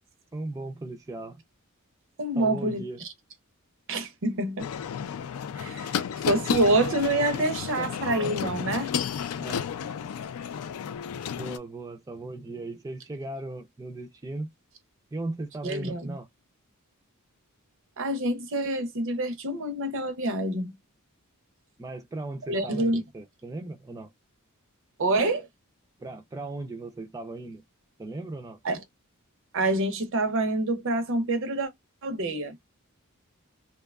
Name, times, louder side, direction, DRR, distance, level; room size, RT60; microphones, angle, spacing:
voice 1, 0.3-1.4 2.4-3.0 6.1-6.3 7.5-8.1 9.4-9.7 11.3-14.5 15.1-16.3 21.8-24.1 26.0-27.6 28.0-28.6, right 2 dB, 15° right, 0.3 m, -37 dB
voice 2, 2.2-2.8 3.9-4.7 5.6-8.9 15.6-16.2 18.0-20.8 22.5-23.0 25.0-25.5 28.6-28.8 29.5-31.7 32.0-32.5, right 2 dB, 65° right, 0.6 m, -27 dB
sound 1, 4.6-11.6, left 8 dB, 80° left, 0.3 m, -32 dB
2.7 x 2.2 x 2.3 m
head